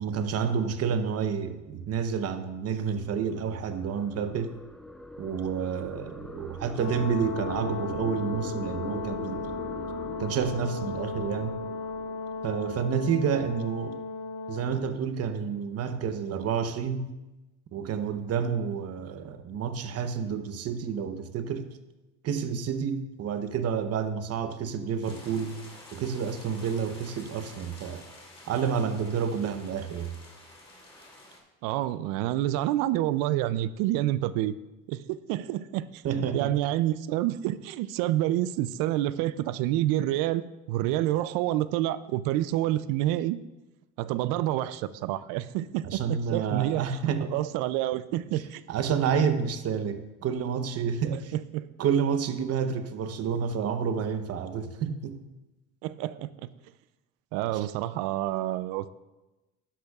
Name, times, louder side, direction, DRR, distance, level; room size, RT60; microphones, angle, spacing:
voice 1, 0.0-4.5 5.2-9.5 10.2-11.6 12.4-14.0 14.5-17.1 17.7-21.7 22.2-25.6 25.9-28.0 28.5-30.1 36.0-36.7 45.8-47.4 48.7-51.3 51.8-55.2 57.5-57.7, right 7 dB, 50° right, 9 dB, 0.9 m, -29 dB
sound 1, 2.5-12.9, equal, ahead, 0.4 m, -43 dB
Brass instrument, 6.7-14.7, left 3 dB, 60° left, 1.5 m, -35 dB
sound 2, 25.0-31.4, left 1 dB, 15° left, 2.5 m, -49 dB
voice 2, 31.6-34.6 34.9-36.0 36.3-40.4 40.7-43.4 44.0-46.8 47.3-48.6 51.1-51.7 55.8-56.5 57.3-58.9, right 14 dB, 85° right, 15 dB, 0.5 m, -28 dB
12.5 x 10.0 x 2.4 m, 1.0 s
cardioid pair, 120°, 33 cm